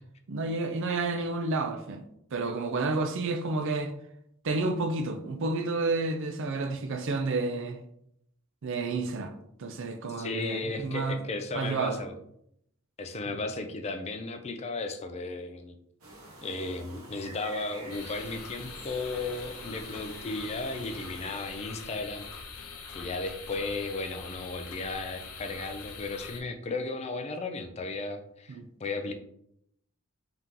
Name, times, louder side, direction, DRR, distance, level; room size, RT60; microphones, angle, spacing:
voice 1, 0.3-2.0 2.3-3.9 4.4-7.8 8.6-9.3 9.6-11.2 11.5-12.0 13.3-13.4 28.5-28.6, right 3 dB, 60° right, 0.5 m, -30 dB
voice 2, 10.2-12.1 13.0-15.8 16.4-22.3 22.9-29.1, left 3 dB, 30° left, 0.4 m, -35 dB
sound 1, 16.0-21.6, right 2 dB, 80° right, 1.2 m, -48 dB
sound 2, 17.9-26.4, left 5 dB, 85° left, 0.7 m, -43 dB
3.7 x 2.8 x 3.6 m
head